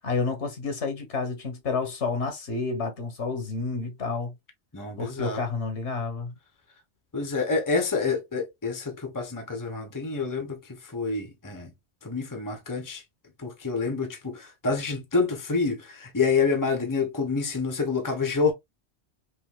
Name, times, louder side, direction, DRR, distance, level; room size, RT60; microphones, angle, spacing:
voice 1, 0.0-4.3 5.0-6.3, left 4 dB, 70° left, 1.5 m, -30 dB
voice 2, 4.7-5.4 7.1-11.7 12.0-13.0 13.4-18.5, left 4 dB, 20° left, 0.9 m, -28 dB
5.4 x 2.8 x 2.2 m
omnidirectional pair, 1.2 m